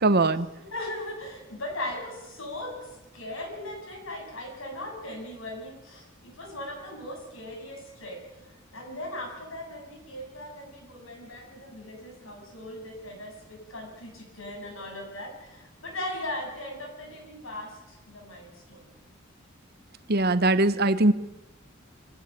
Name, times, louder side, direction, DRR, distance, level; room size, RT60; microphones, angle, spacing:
voice 1, 0.0-0.5 20.1-21.1, right 2 dB, 50° right, 13 dB, 1.1 m, -21 dB
voice 2, 0.6-8.3 8.7-18.9, left 1 dB, 75° left, 2 dB, 7.7 m, -38 dB
23.5 x 16.0 x 9.0 m, 0.98 s
head